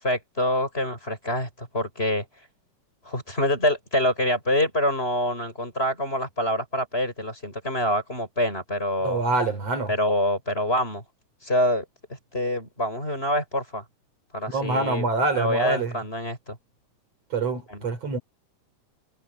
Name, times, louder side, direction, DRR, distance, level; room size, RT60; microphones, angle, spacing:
voice 1, 0.0-2.2 3.0-9.2 9.9-11.0 11.4-11.8 12.3-13.8 14.3-15.1 15.3-16.6 17.7-17.8, left 1 dB, 15° left, 7.4 m, -26 dB
voice 2, 9.0-9.9 14.5-15.9 17.3-18.2, right 3 dB, 55° right, 4.8 m, -25 dB
omnidirectional pair, 3.5 m